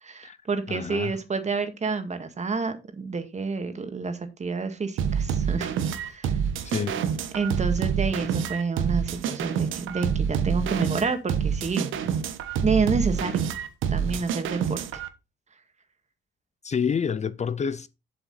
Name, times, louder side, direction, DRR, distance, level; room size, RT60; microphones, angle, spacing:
voice 1, 0.0-5.7 6.0-6.3 7.3-11.9 12.6-13.4 13.9-14.8, right 4 dB, 35° right, 1.9 m, -28 dB
voice 2, 0.7-1.2 6.6-7.0 16.6-17.9, left 6 dB, 35° left, 0.6 m, -28 dB
sound 1, 5.0-15.1, right 7 dB, 85° right, 1.1 m, -27 dB
7.7 x 6.8 x 4.1 m
cardioid pair, 90°, 20 cm